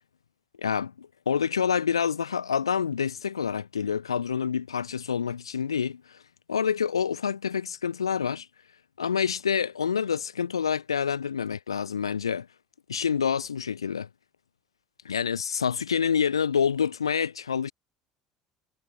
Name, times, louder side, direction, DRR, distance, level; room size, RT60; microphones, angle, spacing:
voice 1, 0.6-6.2 6.5-8.5 9.0-12.5 12.9-14.1 15.1-17.7, left 7 dB, 90° left, 3.7 m, -27 dB
hypercardioid pair, 65°, 3 cm